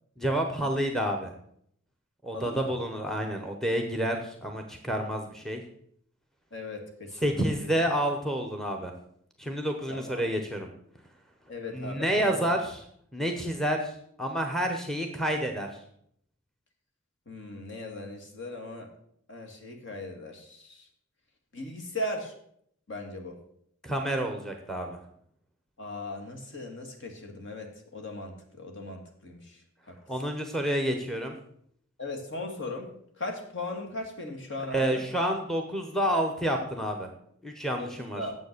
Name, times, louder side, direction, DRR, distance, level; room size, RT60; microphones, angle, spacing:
voice 1, 0.2-1.3 2.2-5.6 7.2-8.9 9.4-10.7 11.7-12.8 13.1-13.9 14.2-15.7 23.8-25.0 30.1-31.3 34.7-37.1 37.4-38.3, right 1 dB, ahead, 4 dB, 0.9 m, -29 dB
voice 2, 2.3-2.7 6.5-7.5 9.9-10.2 11.5-12.5 17.3-18.9 19.3-20.9 21.5-22.3 22.9-23.4 25.8-29.6 29.9-30.0 32.0-32.9 33.2-35.0 37.8-38.4, left 2 dB, 55° left, 3 dB, 2.0 m, -38 dB
9.3 x 7.5 x 6.6 m, 0.69 s
head